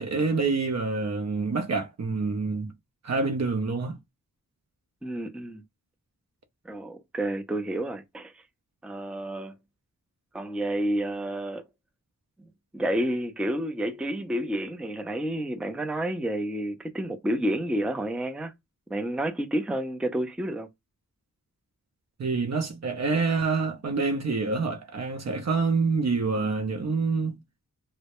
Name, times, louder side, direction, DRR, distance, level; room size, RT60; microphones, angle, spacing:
voice 1, 0.0-2.7 3.0-4.0 22.2-27.4, right 4 dB, 50° right, 0.6 m, -27 dB
voice 2, 5.0-5.6 6.6-8.3 8.8-9.6 10.3-11.6 12.7-18.5 18.9-20.7, right 1 dB, 5° right, 0.4 m, -30 dB
2.2 x 2.1 x 2.9 m
wide cardioid pair, 65°, 35 cm